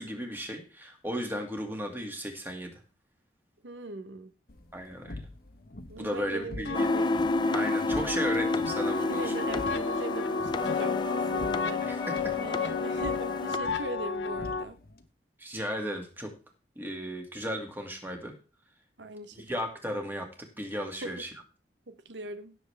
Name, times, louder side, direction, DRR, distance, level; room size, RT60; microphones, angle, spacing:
voice 1, 0.0-2.7 4.7-5.2 6.0-6.9 7.5-9.3 11.8-12.0 15.4-16.3 16.8-18.3 19.4-20.3 20.6-21.3, equal, 10° right, 2.0 m, -35 dB
voice 2, 3.6-4.3 5.9-8.5 9.0-12.1 12.4-14.8 19.0-19.5 21.0-21.2 21.9-22.5, right 2 dB, 90° right, 0.9 m, -41 dB
sound 1, 4.5-15.1, left 1 dB, 55° left, 1.1 m, -46 dB
sound 2, 6.7-14.6, left 5 dB, 85° left, 0.9 m, -32 dB
sound 3, 6.7-13.6, left 2 dB, 25° left, 0.5 m, -30 dB
17.0 x 7.0 x 3.4 m
head